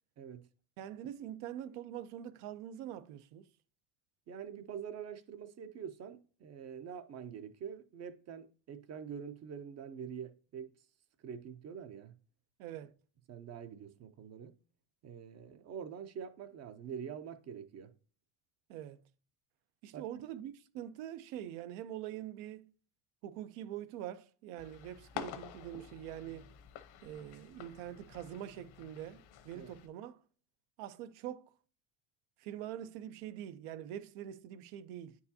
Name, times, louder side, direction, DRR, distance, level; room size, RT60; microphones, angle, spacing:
voice 1, 0.2-0.5 4.3-10.7 11.2-12.2 13.3-14.6 15.0-17.9 19.9-20.0 29.5-29.7, right 7 dB, 35° right, 0.4 m, -45 dB
voice 2, 0.8-3.5 12.6-12.9 18.7-19.0 19.8-22.7 23.2-26.5 27.0-30.2 30.8-31.5 32.4-35.2, right 11 dB, 90° right, 0.7 m, -44 dB
sound 1, 24.6-29.9, left 9 dB, 75° left, 1.0 m, -49 dB
9.4 x 4.7 x 2.7 m
cardioid pair, 150°, 49 cm